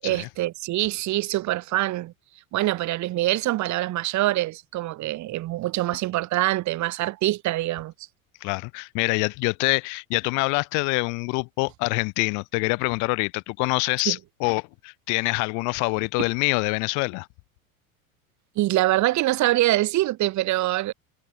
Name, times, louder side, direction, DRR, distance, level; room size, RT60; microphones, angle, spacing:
voice 1, 0.0-2.1 2.5-7.9 14.0-14.2 18.5-20.9, right 16 dB, 40° right, 6.9 m, -24 dB
voice 2, 8.4-17.3, left 31 dB, 45° left, 1.2 m, -25 dB
figure-of-eight pair, 80°, 42 cm